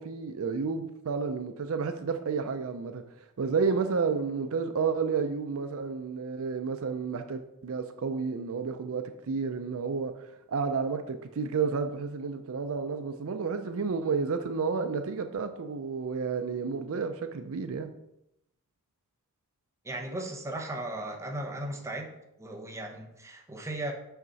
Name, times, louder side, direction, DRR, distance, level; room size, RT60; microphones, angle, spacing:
voice 1, 0.0-3.0 3.4-17.9, right 5 dB, 70° right, 0.5 m, -31 dB
voice 2, 19.8-22.1 22.4-23.9, right 1 dB, 15° right, 0.9 m, -36 dB
5.8 x 5.6 x 4.0 m
head